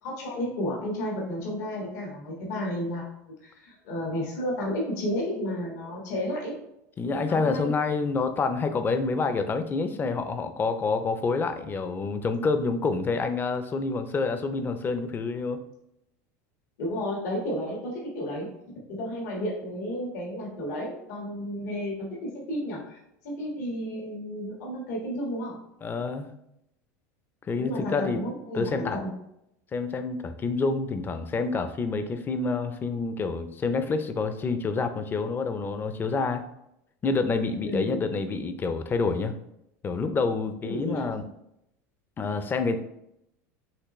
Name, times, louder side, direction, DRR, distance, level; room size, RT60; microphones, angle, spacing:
voice 1, 0.0-6.6 7.1-7.7 9.2-9.3 16.8-18.5 19.0-23.0 23.2-25.6 27.6-29.1 37.6-38.0 40.6-41.1, equal, 80° left, -3 dB, 1.5 m, -32 dB
voice 2, 7.0-15.6 25.8-26.3 27.5-28.2 28.5-29.0 29.7-36.4 37.0-39.3 39.8-41.3 42.2-42.8, left 4 dB, 25° left, 9 dB, 0.5 m, -28 dB
5.8 x 3.0 x 3.1 m, 0.81 s
supercardioid pair, 115°, 9 cm